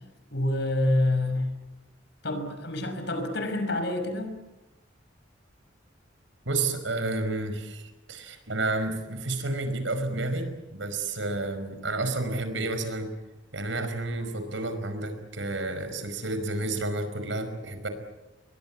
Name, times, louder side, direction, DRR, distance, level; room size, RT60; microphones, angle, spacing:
voice 1, 0.3-1.5 2.2-4.3, left 1 dB, 65° left, 7 dB, 5.9 m, -27 dB
voice 2, 6.4-13.1 13.5-17.9, right 2 dB, 80° right, 9 dB, 5.1 m, -30 dB
28.0 x 22.5 x 8.6 m, 1.0 s
head